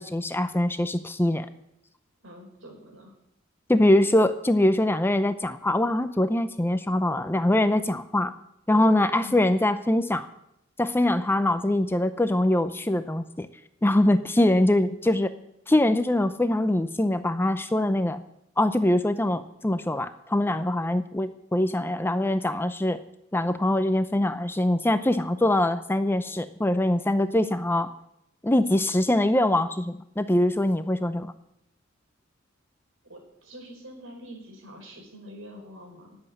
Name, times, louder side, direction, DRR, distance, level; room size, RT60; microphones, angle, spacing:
voice 1, 0.0-1.5 3.7-8.3 8.7-10.3 10.8-13.5 13.8-15.3 15.7-18.2 18.6-23.0 23.3-27.9 28.4-31.3, left 1 dB, 10° left, 11 dB, 0.6 m, -23 dB
voice 2, 2.2-3.1 9.2-9.4 19.9-20.1 33.1-36.2, equal, 75° right, 1 dB, 5.0 m, -45 dB
11.5 x 7.9 x 9.6 m, 0.79 s
head